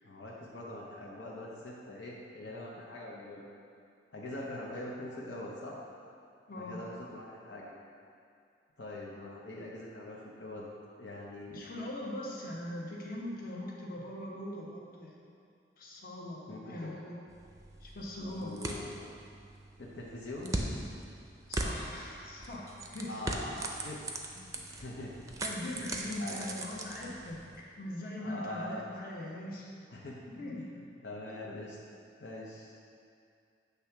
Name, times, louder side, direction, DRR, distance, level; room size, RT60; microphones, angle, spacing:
voice 1, 0.0-3.5 4.1-5.8 6.5-7.7 8.8-10.7 11.0-11.9 16.5-16.7 18.4-19.1 19.8-20.6 23.1-24.0 24.3-25.3 25.8-26.5 28.2-28.8 29.9-30.2 30.6-31.8 32.2-32.7, left 1 dB, 80° left, -4 dB, 0.8 m, -43 dB
voice 2, 6.5-6.8 11.5-15.2 15.8-17.2 17.8-18.5 21.5-23.2 25.4-27.4 27.8-29.7 30.3-30.7, left 1 dB, 50° left, -3 dB, 1.1 m, -41 dB
sound 1, 17.3-27.6, right 2 dB, 20° right, 0.5 m, -40 dB
8.2 x 3.5 x 5.8 m, 2.4 s
head